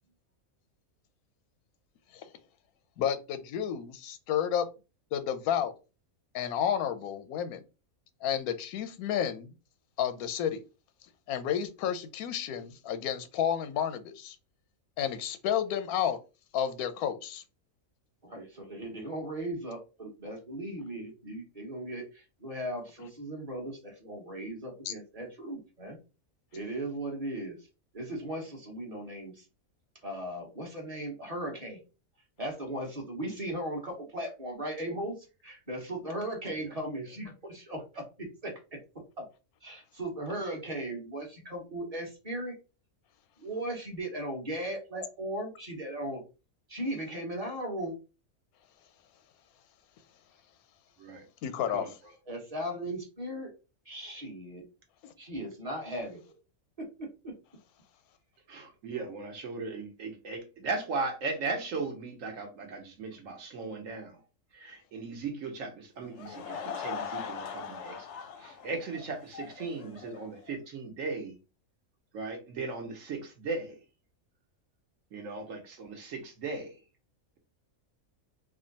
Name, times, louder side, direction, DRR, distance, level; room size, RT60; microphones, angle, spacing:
voice 1, 3.0-4.7 5.1-5.7 6.3-7.6 8.2-9.5 10.0-10.6 11.3-14.4 15.0-16.2 16.5-17.4 24.8-24.9 51.4-51.9 55.0-55.1, left 9 dB, 90° left, 1.1 m, -31 dB
voice 2, 18.2-26.0 26.5-27.6 27.9-29.4 30.0-31.8 32.4-38.8 39.2-39.3 39.6-42.5 43.4-46.2 46.7-48.0 52.3-53.5 53.9-54.6 55.2-56.3 56.8-57.3, right 1 dB, 30° right, 1.0 m, -37 dB
voice 3, 58.5-64.2 64.5-68.1 68.4-71.4 72.1-73.8 75.1-76.7, right 3 dB, 65° right, 1.2 m, -37 dB
Laughter / Crowd, 66.0-70.6, left 7 dB, 65° left, 0.7 m, -40 dB
3.5 x 2.1 x 3.9 m
omnidirectional pair, 1.5 m